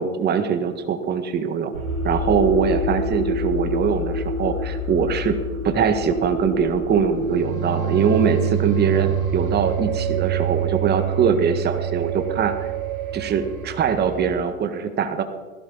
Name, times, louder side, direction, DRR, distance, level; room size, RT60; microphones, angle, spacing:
voice 1, 0.0-1.7 2.0-5.4 5.6-12.7 13.1-15.2, right 6 dB, 25° right, 8 dB, 1.8 m, -22 dB
sound 1, 1.7-14.3, right 4 dB, 90° right, 3.4 m, -26 dB
20.5 x 16.5 x 4.1 m, 1.3 s
hypercardioid pair, 115°, 41 cm